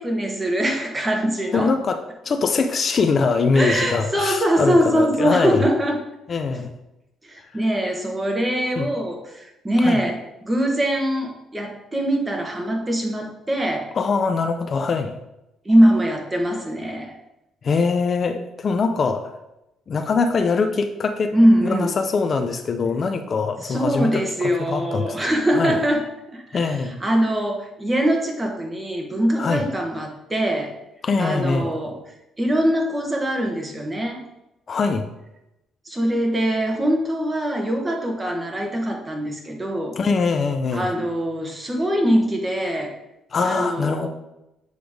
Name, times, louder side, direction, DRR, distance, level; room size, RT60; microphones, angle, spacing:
voice 1, 0.0-1.7 3.5-6.0 6.5-6.6 7.3-13.9 15.6-17.2 21.3-21.9 23.6-26.1 26.3-30.7 31.2-32.0 32.4-34.2 35.8-40.0 40.7-43.0 43.4-44.1, equal, 20° right, 3 dB, 1.4 m, -22 dB
voice 2, 1.5-5.6 6.3-6.7 7.5-7.6 8.8-8.9 9.8-10.0 13.9-15.2 17.6-19.3 19.9-21.4 21.6-25.1 25.5-25.8 26.5-27.0 29.4-29.6 31.0-31.7 34.7-35.1 40.0-40.9 43.3-44.1, left 4 dB, 45° left, 7 dB, 0.6 m, -22 dB
8.0 x 3.3 x 5.0 m, 0.90 s
cardioid pair, 90°, 0 cm